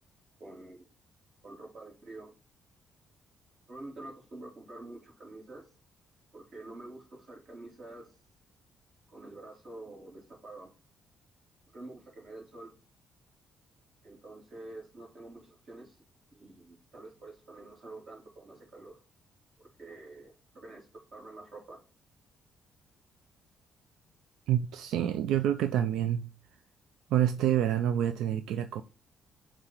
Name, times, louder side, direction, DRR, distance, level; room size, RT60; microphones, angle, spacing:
voice 1, 0.4-0.8 1.4-2.3 3.7-5.7 6.3-8.1 9.1-10.7 11.7-12.7 14.0-16.0 16.3-19.0 19.6-21.8, right 2 dB, 45° right, 3.1 m, -47 dB
voice 2, 24.5-26.3 27.1-28.8, right 11 dB, 85° right, 0.4 m, -27 dB
7.4 x 3.3 x 4.5 m
cardioid pair, 90°, 0 cm